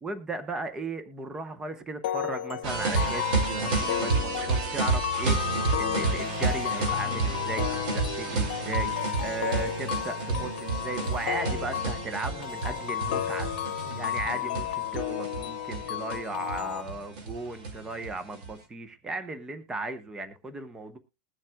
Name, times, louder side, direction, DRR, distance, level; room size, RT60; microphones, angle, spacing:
voice 1, 0.0-13.5 13.9-21.0, right 3 dB, 10° right, 10 dB, 0.9 m, -36 dB
sound 1, 2.0-16.8, left 12 dB, 85° left, 0.8 m, -33 dB
sound 2, 2.6-18.5, right 4 dB, 70° right, 2.6 m, -30 dB
21.0 x 7.3 x 2.3 m, 0.28 s
supercardioid pair, 165°, 5 cm